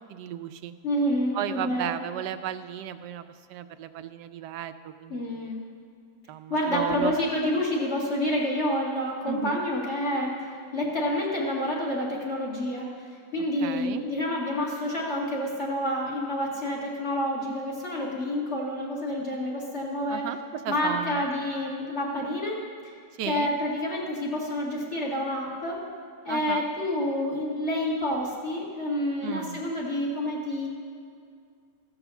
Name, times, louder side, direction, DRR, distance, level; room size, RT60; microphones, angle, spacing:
voice 1, 0.0-0.7 1.3-3.2 3.5-5.5 6.3-7.1 9.3-9.6 13.6-14.0 20.1-20.4 20.6-21.2 23.2-23.5 26.3-26.6 29.2-29.6, right 11 dB, 85° right, 11 dB, 1.2 m, -34 dB
voice 2, 0.8-2.0 5.1-5.6 6.5-10.5 10.7-20.2 20.7-22.6 23.3-25.9 26.2-30.7, left 1 dB, 40° left, -4 dB, 2.2 m, -28 dB
15.0 x 5.5 x 7.0 m, 2.3 s
omnidirectional pair, 1.8 m